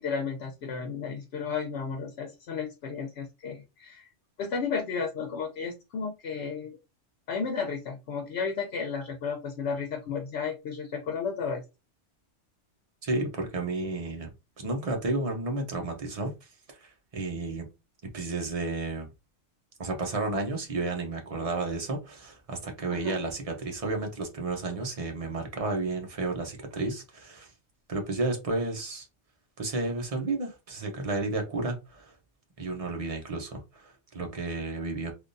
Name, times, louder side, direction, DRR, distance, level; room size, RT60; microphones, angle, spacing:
voice 1, 0.0-4.1 4.4-6.8 7.3-11.6 22.9-23.2, left 5 dB, 65° left, 0.9 m, -33 dB
voice 2, 13.0-14.3 14.6-16.3 16.8-17.7 18.1-19.1 19.8-27.5 27.9-29.1 29.6-32.1 32.6-35.1, right 3 dB, 35° right, 0.8 m, -32 dB
3.5 x 2.5 x 2.6 m
omnidirectional pair, 1.2 m